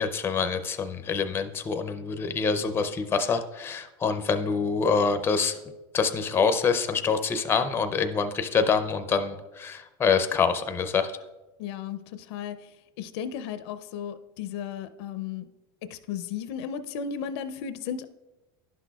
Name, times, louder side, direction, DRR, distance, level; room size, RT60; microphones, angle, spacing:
voice 1, 0.0-5.5 5.9-11.1, left 5 dB, 15° left, 8 dB, 0.5 m, -26 dB
voice 2, 11.6-12.7 13.0-15.5 15.9-18.1, left 8 dB, 75° left, 12 dB, 0.5 m, -35 dB
11.0 x 6.0 x 2.3 m, 1.1 s
supercardioid pair, 130°, 14 cm